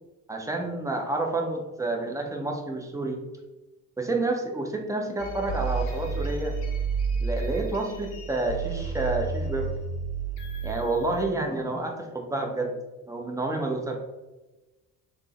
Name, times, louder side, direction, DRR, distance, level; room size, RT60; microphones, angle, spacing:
voice 1, 0.3-3.2 4.0-6.6 7.2-9.7 10.6-12.8 13.1-14.0, right 2 dB, 10° right, 2 dB, 0.4 m, -29 dB
sound 1, 5.2-11.2, right 4 dB, 85° left, 0.6 m, -31 dB
3.3 x 2.0 x 2.9 m, 1.1 s
hypercardioid pair, 50°, 48 cm